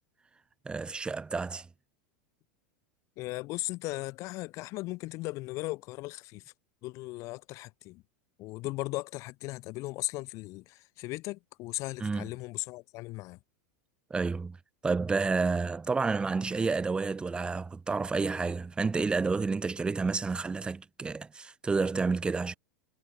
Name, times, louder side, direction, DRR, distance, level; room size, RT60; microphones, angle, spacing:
voice 1, 0.6-1.7 12.0-12.3 14.1-14.6 14.8-22.5, right 4 dB, 10° right, 0.9 m, -30 dB
voice 2, 3.2-6.4 6.8-8.0 8.4-13.4, left 20 dB, 45° left, 0.5 m, -37 dB
supercardioid pair, 130°, 8 cm